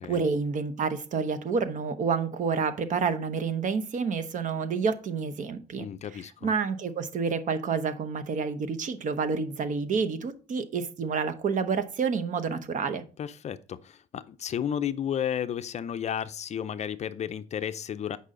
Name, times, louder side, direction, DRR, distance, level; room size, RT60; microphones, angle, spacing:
voice 1, 0.0-5.9 6.1-13.0, right 5 dB, 50° right, 0.9 m, -29 dB
voice 2, 5.8-6.5 13.2-18.2, left 9 dB, 40° left, 0.5 m, -33 dB
8.2 x 5.4 x 3.8 m
cardioid pair, 110°, 17 cm